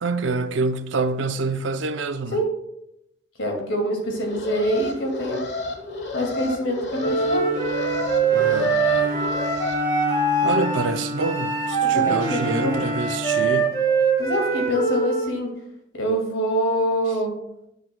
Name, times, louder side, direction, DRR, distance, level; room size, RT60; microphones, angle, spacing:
voice 1, 0.0-2.4 8.3-8.9 10.4-13.7, right 3 dB, 80° right, 0.6 m, -26 dB
voice 2, 3.4-5.4 6.1-7.5 11.9-12.7 14.2-15.5 15.9-17.3, equal, 90° left, 2.2 m, -25 dB
Alarm, 4.1-9.7, left 2 dB, 65° left, 1.2 m, -32 dB
Wind instrument woodwind instrument, 7.0-15.3, right 4 dB, 20° left, 1.2 m, -23 dB
Bowed string instrument, 7.0-14.2, equal, 50° right, 1.9 m, -31 dB
10.0 x 7.8 x 2.3 m
head